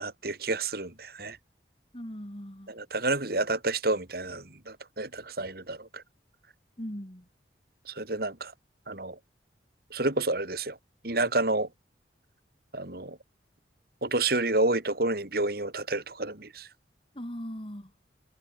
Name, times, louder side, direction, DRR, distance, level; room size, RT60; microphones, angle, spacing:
voice 1, 0.0-1.4 2.7-6.0 7.9-8.5 8.9-9.2 9.9-10.8 11.0-11.7 12.7-13.2 14.0-16.7, right 2 dB, 55° right, 3.1 m, -29 dB
voice 2, 1.9-2.7 6.8-7.3 17.2-17.9, equal, 30° left, 3.9 m, -39 dB
head